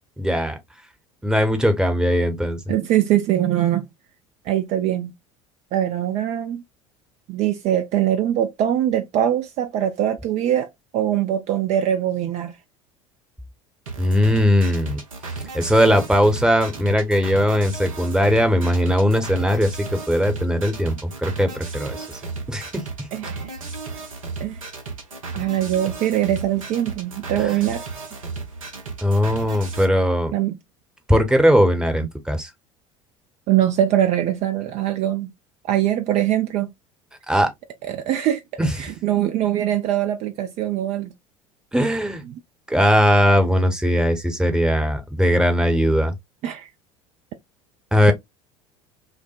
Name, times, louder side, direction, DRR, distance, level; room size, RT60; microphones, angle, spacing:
voice 1, 0.2-0.5 1.2-2.6 14.0-15.0 15.5-22.2 22.5-23.1 27.4-27.5 29.0-30.3 31.1-32.5 37.3-37.5 38.6-38.8 41.7-42.2 42.7-46.1 47.9-48.1, equal, 5° right, 0.8 m, -19 dB
voice 2, 2.7-3.9 4.5-5.1 5.7-6.6 7.3-12.6 23.1-23.5 24.4-24.6 25.3-27.8 30.3-30.6 33.5-35.3 35.6-36.7 37.8-38.4 38.8-41.1 42.3-42.4 46.4-46.7, right 11 dB, 40° right, 0.4 m, -22 dB
sound 1, 13.9-29.9, right 4 dB, 80° right, 0.8 m, -34 dB
5.8 x 2.1 x 2.3 m
figure-of-eight pair, 70°, 17 cm